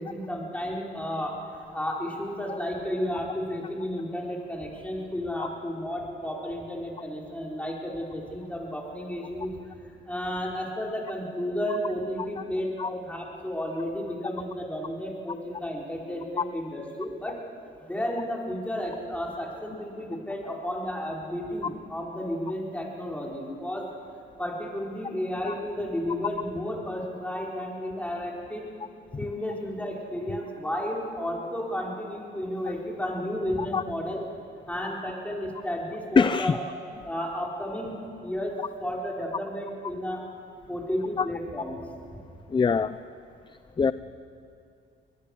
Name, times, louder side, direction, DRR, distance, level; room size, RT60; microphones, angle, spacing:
voice 1, 0.0-1.4 1.7-9.6 10.0-17.3 17.8-23.9 24.4-28.6 29.2-34.2 34.7-36.6 37.0-40.2 40.7-42.2, equal, 5° left, -2 dB, 4.6 m, -32 dB
voice 2, 36.2-36.5 41.2-41.3 42.5-43.0 43.8-43.9, left 5 dB, 25° left, 14 dB, 0.5 m, -23 dB
22.5 x 20.5 x 6.5 m, 2.5 s
cardioid pair, 90°, 20 cm